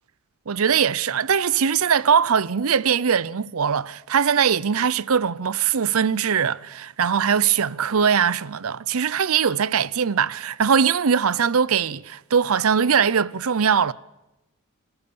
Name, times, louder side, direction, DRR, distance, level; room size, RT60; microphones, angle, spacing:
voice 1, 0.5-13.9, right 7 dB, 70° right, 0.6 m, -21 dB
29.5 x 13.5 x 7.0 m
head